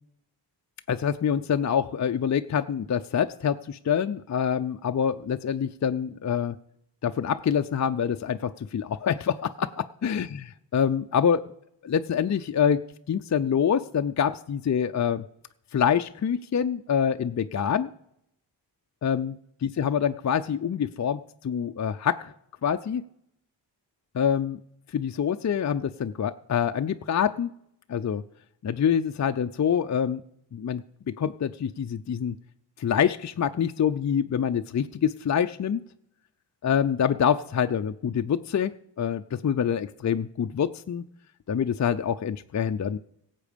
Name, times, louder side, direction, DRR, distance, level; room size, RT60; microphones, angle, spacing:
voice 1, 0.9-6.6 7.0-10.3 10.7-11.5 11.8-12.8 13.1-15.2 15.7-17.9 19.0-19.3 19.6-22.3 22.6-23.0 24.1-24.6 24.9-27.5 27.9-28.2 28.6-30.2 30.5-32.4 32.8-35.8 36.6-38.7 39.0-41.0 41.5-43.0, left 8 dB, 40° left, 8 dB, 0.5 m, -26 dB
17.0 x 7.5 x 5.2 m, 0.75 s
cardioid pair, 55°, 44 cm